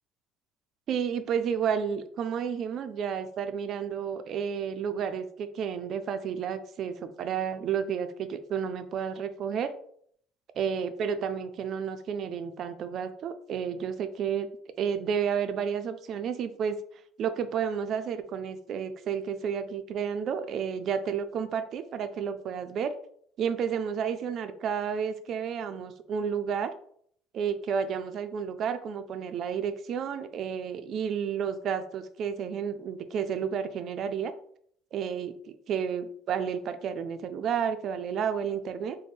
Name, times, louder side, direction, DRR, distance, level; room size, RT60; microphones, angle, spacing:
voice 1, 0.9-9.7 10.6-14.5 14.8-16.8 17.2-22.9 23.4-26.7 27.3-34.3 34.9-39.0, right 7 dB, 50° right, 10 dB, 0.3 m, -31 dB
4.0 x 2.1 x 3.4 m, 0.63 s
cardioid pair, 135°, 0 cm